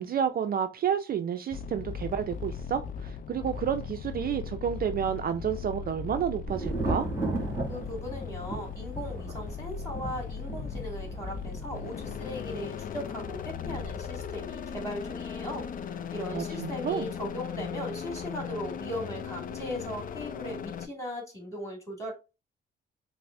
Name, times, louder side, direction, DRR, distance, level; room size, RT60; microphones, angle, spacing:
voice 1, 0.0-7.1 16.3-17.1, right 8 dB, 50° right, 0.4 m, -30 dB
sound 1, 1.5-20.9, left 7 dB, 45° left, 0.4 m, -38 dB
Thunder, 6.5-16.1 16.4-17.1, right 2 dB, 10° right, 2.2 m, -37 dB
voice 2, 7.7-22.1, equal, 15° left, 2.2 m, -38 dB
5.5 x 2.1 x 2.6 m
cardioid pair, 90°, 20 cm